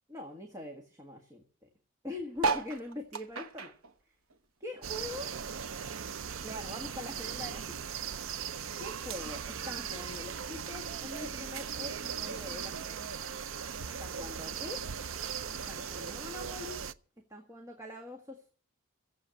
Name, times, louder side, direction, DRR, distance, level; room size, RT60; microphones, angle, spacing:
voice 1, 0.1-1.7 2.0-3.7 4.6-5.3 6.4-8.1 8.8-13.0 14.0-14.8 15.7-16.8 17.3-18.5, left 2 dB, 15° right, 2 dB, 1.7 m, -43 dB
sound 1, 2.4-5.1 5.5-7.0 7.5-7.6 7.7-7.8 8.0-8.4 9.2-9.3, right 4 dB, 90° right, 1.1 m, -35 dB
sound 2, 4.8-16.9, right 7 dB, 70° right, 0.6 m, -39 dB
15.0 x 8.0 x 7.8 m, 0.42 s
head